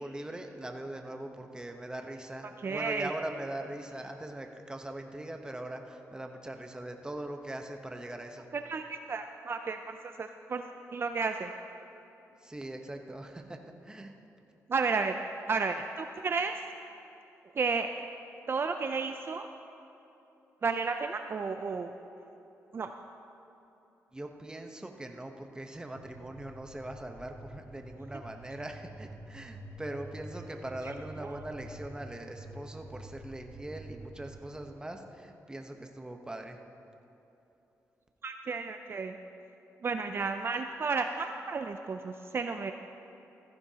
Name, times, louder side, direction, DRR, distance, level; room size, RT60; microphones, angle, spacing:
voice 1, 0.0-8.4 12.4-14.1 24.1-36.6, right 1 dB, 15° right, 4 dB, 0.9 m, -41 dB
voice 2, 2.6-3.1 8.5-11.5 14.7-15.2 15.5-16.6 17.5-17.9 18.5-19.5 20.6-21.9 22.7-22.9 30.8-30.9 31.2-31.3 38.2-39.2 39.8-42.7, right 4 dB, 40° right, 6 dB, 0.4 m, -32 dB
sound 1, 25.9-34.7, right 1 dB, 75° right, 2.6 m, -48 dB
15.0 x 14.5 x 2.9 m, 3.0 s
cardioid pair, 95°, 6 cm